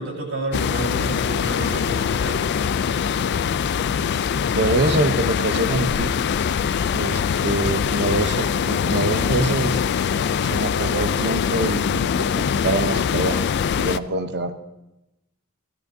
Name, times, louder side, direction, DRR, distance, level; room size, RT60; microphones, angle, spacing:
voice 1, 0.0-2.4, right 1 dB, 70° right, -2 dB, 4.4 m, -30 dB
sound 1, 0.5-14.0, left 7 dB, 50° left, 0.3 m, -23 dB
voice 2, 4.5-6.1 6.9-9.8 10.4-13.4 13.8-14.5, right 2 dB, 50° right, 8 dB, 0.8 m, -25 dB
16.0 x 13.0 x 2.7 m, 0.94 s
head